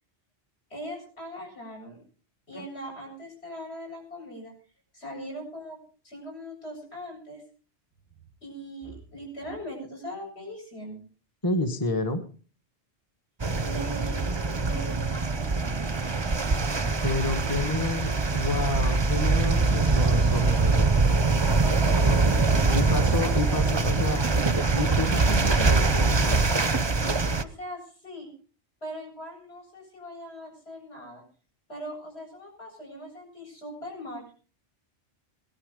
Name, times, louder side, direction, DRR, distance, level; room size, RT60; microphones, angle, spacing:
voice 1, 0.7-2.0 2.5-4.5 4.9-5.8 6.0-7.4 8.4-11.0 13.6-16.1 21.6-23.1 27.3-28.3 28.8-31.2 31.7-34.2, equal, 70° left, 0 dB, 8.2 m, -40 dB
voice 2, 11.4-12.2 17.0-21.2 22.7-24.2 24.7-26.6, left 2 dB, 20° left, 7 dB, 1.3 m, -30 dB
sound 1, 13.4-27.4, right 3 dB, 25° right, 0.8 m, -23 dB
18.5 x 13.0 x 5.3 m, 0.40 s
omnidirectional pair, 1.1 m